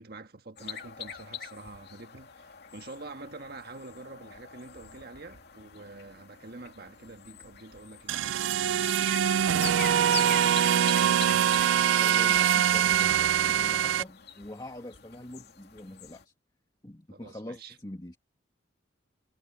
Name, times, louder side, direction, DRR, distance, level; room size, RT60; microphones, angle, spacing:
voice 1, 0.0-8.6 17.1-17.8, right 3 dB, 50° right, 1.6 m, -46 dB
sound 1, 0.6-16.2, left 7 dB, 55° left, 2.6 m, -44 dB
sound 2, 8.1-14.0, right 10 dB, 75° right, 0.3 m, -23 dB
voice 2, 12.0-16.3 16.8-18.2, left 1 dB, 20° left, 2.0 m, -44 dB
head